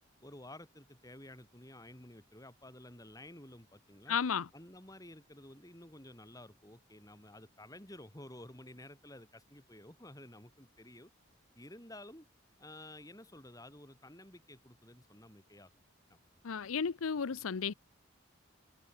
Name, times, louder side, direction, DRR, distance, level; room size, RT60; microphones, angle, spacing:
voice 1, 0.2-4.2 4.5-11.1 11.5-12.3 12.6-15.7 16.1-16.2, left 1 dB, 15° left, 5.3 m, -52 dB
voice 2, 4.1-4.5 16.4-17.7, left 6 dB, 90° left, 0.6 m, -33 dB
head